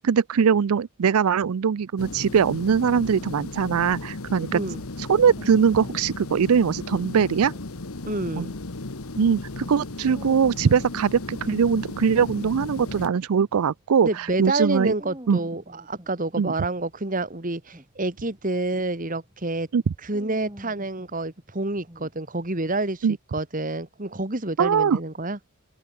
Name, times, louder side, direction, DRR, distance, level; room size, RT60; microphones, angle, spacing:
voice 1, 0.0-4.6 5.0-7.5 8.4-8.5 9.2-14.9 15.3-15.4 16.4-16.5 19.7-19.8 23.0-23.2 24.6-25.0, right 6 dB, 80° right, 0.4 m, -21 dB
sound 1, 2.0-13.1, left 2 dB, 75° left, 1.5 m, -35 dB
voice 2, 4.5-4.8 8.1-8.5 14.0-19.7 20.0-23.1 23.3-25.4, right 2 dB, 40° right, 2.1 m, -28 dB
sound 2, 5.2-13.8 14.3-22.8, equal, 20° right, 4.2 m, -48 dB
head